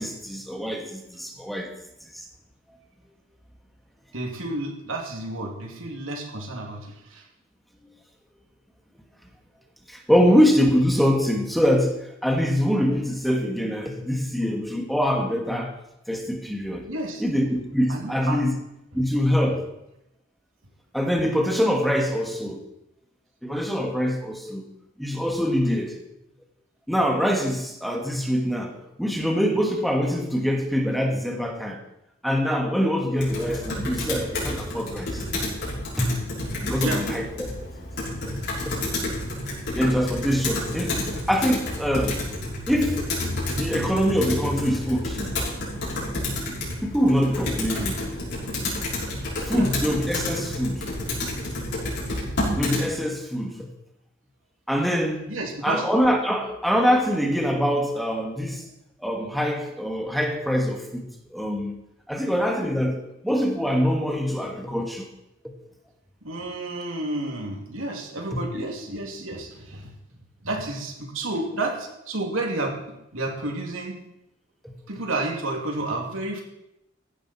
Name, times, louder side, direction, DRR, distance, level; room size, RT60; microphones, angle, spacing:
voice 1, 0.0-1.7 2.1-2.2 9.9-15.7 16.1-16.8 17.2-18.5 18.9-19.6 20.9-22.6 23.4-24.7 25.0-26.0 26.9-31.8 32.2-35.2 36.0-36.1 36.6-37.2 38.3-38.4 38.6-38.8 39.7-41.0 41.3-42.2 42.7-43.1 43.4-45.3 46.8-48.0 49.5-50.9 52.6-53.7 54.7-55.3 55.6-58.7 59.0-61.0 61.3-61.8 62.1-63.0 63.2-65.1 68.5-68.7 74.6-74.7, equal, ahead, 2 dB, 1.5 m, -24 dB
voice 2, 4.1-7.3 16.8-17.2 17.9-18.4 18.9-19.0 36.8-37.1 47.7-47.9 49.2-49.7 55.3-55.9 66.2-69.9 70.4-72.8 73.1-74.0 74.9-76.4, right 2 dB, 80° right, 1 dB, 2.9 m, -31 dB
Computer keyboard, 33.2-52.8, left 1 dB, 60° left, 5.8 m, -30 dB
15.5 x 11.5 x 4.5 m, 0.86 s
head